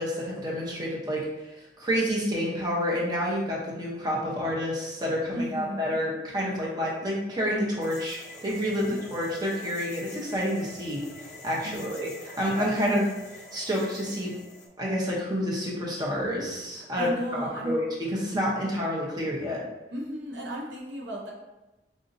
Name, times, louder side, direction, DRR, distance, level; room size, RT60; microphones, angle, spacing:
voice 1, 0.0-14.4 14.8-19.6, equal, 25° right, -4 dB, 0.8 m, -29 dB
voice 2, 5.3-5.9 8.9-9.0 11.6-12.0 12.8-13.1 17.0-17.8 19.9-21.3, equal, 70° right, -2 dB, 0.7 m, -34 dB
sound 1, 7.8-14.7, left 2 dB, 40° left, 0.6 m, -46 dB
4.9 x 2.7 x 2.6 m, 1.0 s
head